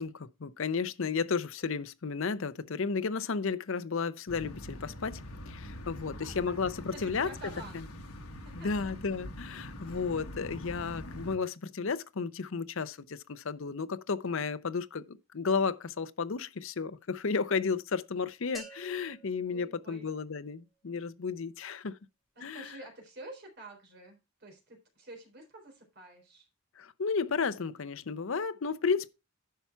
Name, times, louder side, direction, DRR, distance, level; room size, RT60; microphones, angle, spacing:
voice 1, 0.0-5.2 5.5-7.3 7.7-7.9 8.5-22.0 22.4-22.8 26.8-29.1, left 5 dB, 60° left, 0.6 m, -33 dB
sound 1, 4.3-11.4, left 1 dB, 85° left, 1.3 m, -44 dB
voice 2, 6.0-6.3 6.9-7.8 8.6-8.9 9.5-9.6 19.5-20.1 22.4-26.4, right 2 dB, 50° right, 3.7 m, -49 dB
sound 2, 18.5-20.5, right 1 dB, ahead, 2.4 m, -51 dB
10.5 x 5.7 x 4.5 m
head